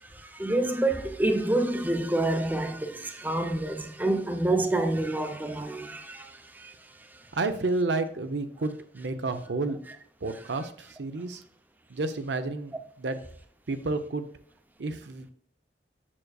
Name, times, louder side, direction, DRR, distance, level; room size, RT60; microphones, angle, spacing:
voice 1, 0.0-6.7 7.1-7.2, right 2 dB, 10° right, 0.6 m, -28 dB
voice 2, 7.3-9.8 10.2-11.4 11.9-13.2 13.7-14.3 14.8-15.3, right 3 dB, 85° right, 0.7 m, -30 dB
7.2 x 6.5 x 2.4 m
head